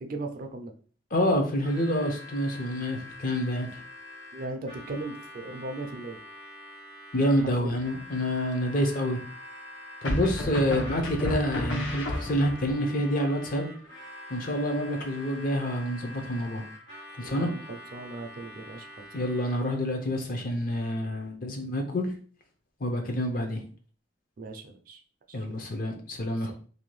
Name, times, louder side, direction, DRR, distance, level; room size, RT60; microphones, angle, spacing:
voice 1, 0.0-0.7 4.3-6.2 7.6-7.8 10.4-10.7 17.2-19.3 24.4-25.0 25.3-25.6, right 2 dB, 45° right, 5 dB, 0.4 m, -38 dB
voice 2, 1.1-3.8 7.1-9.2 10.0-13.7 14.3-16.6 17.2-17.5 19.1-22.1 22.8-23.6 25.3-26.5, equal, 45° left, 4 dB, 0.6 m, -28 dB
Harmonica, 1.6-19.8, left 1 dB, 70° left, 1.1 m, -46 dB
sound 1, 7.4-8.0 10.0-12.7, left 1 dB, 85° left, 0.7 m, -31 dB
2.7 x 2.2 x 3.1 m, 0.42 s
head